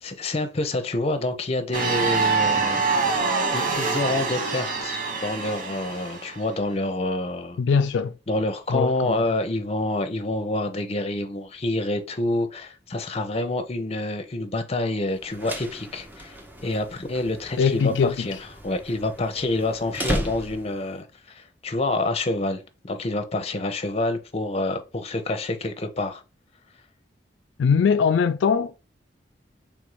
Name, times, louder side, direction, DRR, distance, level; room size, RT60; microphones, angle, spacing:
voice 1, 0.0-2.9 3.5-7.6 8.3-18.4 18.6-26.2, left 2 dB, 35° left, 0.6 m, -27 dB
sound 1, 1.7-6.4, right 4 dB, 50° right, 0.9 m, -25 dB
voice 2, 7.6-8.1 8.7-9.2 17.6-18.3 27.6-28.8, left 6 dB, 85° left, 0.3 m, -21 dB
sound 2, 15.2-20.9, equal, 10° right, 0.6 m, -35 dB
3.6 x 2.6 x 4.6 m
head